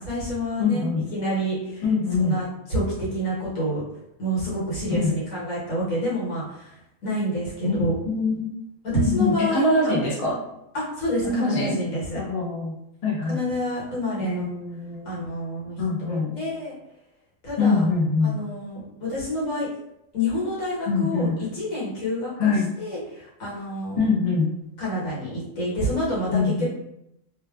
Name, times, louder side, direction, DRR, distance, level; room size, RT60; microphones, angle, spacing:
voice 1, 0.0-1.8 2.2-3.8 4.2-6.8 7.0-7.9 8.9-10.0 10.7-12.2 13.3-14.4 15.0-15.8 16.1-16.7 17.4-17.9 18.2-19.7 20.1-24.1 24.8-26.6, equal, 75° left, -8 dB, 1.6 m, -28 dB
voice 2, 0.6-1.1 1.8-2.4 4.9-5.1 7.6-7.8 8.1-8.5 8.9-10.4 11.2-11.7 12.1-12.7 13.0-13.4 14.2-15.3 15.8-16.4 17.6-18.4 20.9-21.4 22.4-22.7 23.9-24.5 26.3-26.6, left 4 dB, 40° left, -5 dB, 0.5 m, -24 dB
2.9 x 2.2 x 2.3 m, 0.84 s
omnidirectional pair, 1.4 m